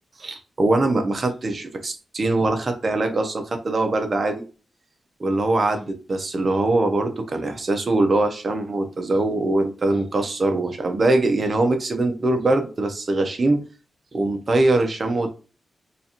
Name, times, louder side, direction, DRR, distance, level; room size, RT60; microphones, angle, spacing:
voice 1, 0.2-4.4 5.2-13.6 14.1-15.3, right 2 dB, 40° right, 5 dB, 0.6 m, -22 dB
3.9 x 2.4 x 2.8 m, 0.34 s
cardioid pair, 95°, 0 cm